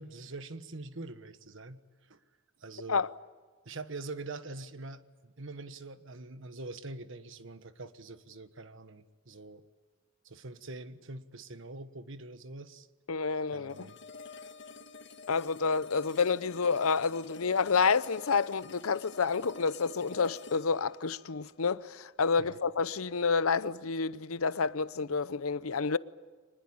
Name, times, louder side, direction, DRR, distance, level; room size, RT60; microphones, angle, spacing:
voice 1, 0.0-1.8 2.1-2.2 2.6-3.0 3.6-9.6 10.2-12.9 13.5-14.0 22.4-22.6, right 3 dB, 65° right, 1.4 m, -44 dB
voice 2, 13.1-13.9 15.3-26.0, left 5 dB, 85° left, 0.7 m, -29 dB
sound 1, 13.7-22.7, left 4 dB, 60° left, 1.5 m, -49 dB
25.0 x 20.5 x 8.8 m
head